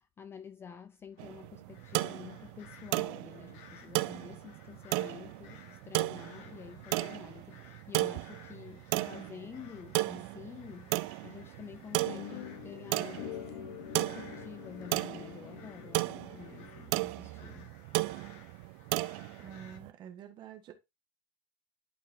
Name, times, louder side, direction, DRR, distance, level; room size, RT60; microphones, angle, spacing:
voice 1, 0.0-13.5 13.9-17.8, left 7 dB, 20° left, 0.3 m, -49 dB
sound 1, 1.1-19.8, left 8 dB, 50° left, 1.2 m, -58 dB
sound 2, 1.2-19.9, right 22 dB, 60° right, 0.4 m, -35 dB
sound 3, 12.1-17.2, left 12 dB, 70° left, 0.8 m, -46 dB
voice 2, 19.4-20.7, right 8 dB, 35° right, 1.4 m, -48 dB
11.5 x 4.0 x 2.6 m
supercardioid pair, 160°, 13 cm